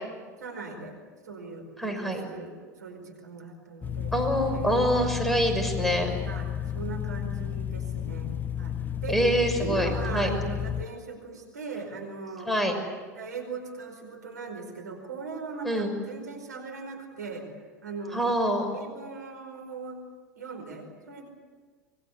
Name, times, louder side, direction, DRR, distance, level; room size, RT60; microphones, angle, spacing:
voice 1, 0.4-1.0 1.2-5.1 5.7-9.3 9.6-12.5 13.1-17.5 17.8-18.3 18.7-20.0 20.3-21.3, right 4 dB, 85° right, 4 dB, 5.0 m, -39 dB
voice 2, 1.8-2.2 4.1-6.1 9.1-10.3 12.5-12.8 15.6-15.9 18.1-18.7, equal, ahead, 4 dB, 6.1 m, -25 dB
sound 1, 3.8-10.8, left 9 dB, 20° left, 0.8 m, -32 dB
25.5 x 22.0 x 8.4 m, 1.5 s
hypercardioid pair, 85°, 9 cm